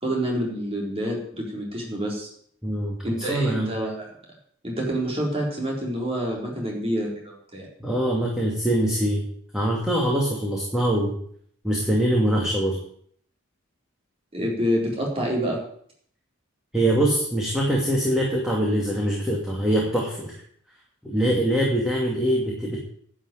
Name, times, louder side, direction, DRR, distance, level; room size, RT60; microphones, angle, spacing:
voice 1, 0.0-2.3 3.0-4.1 4.6-7.7 14.3-15.6, equal, 30° right, -2 dB, 4.0 m, -27 dB
voice 2, 2.6-3.7 7.8-9.2 9.5-11.1 11.6-12.7 16.7-20.3 21.0-22.8, right 1 dB, 5° right, -4 dB, 2.4 m, -23 dB
11.0 x 6.4 x 9.2 m, 0.62 s
head